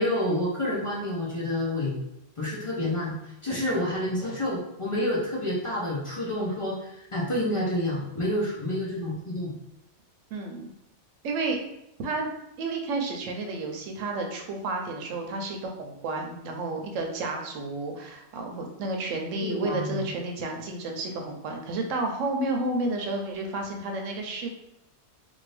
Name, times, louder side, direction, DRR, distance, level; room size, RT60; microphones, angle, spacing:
voice 1, 0.0-1.9 2.4-9.5 19.4-20.1, left 1 dB, 35° left, -6 dB, 0.6 m, -29 dB
voice 2, 10.3-10.7 11.2-11.6 12.0-12.3 12.6-24.5, right 2 dB, 85° right, 2 dB, 1.0 m, -31 dB
2.6 x 2.6 x 3.2 m, 0.85 s
omnidirectional pair, 1.3 m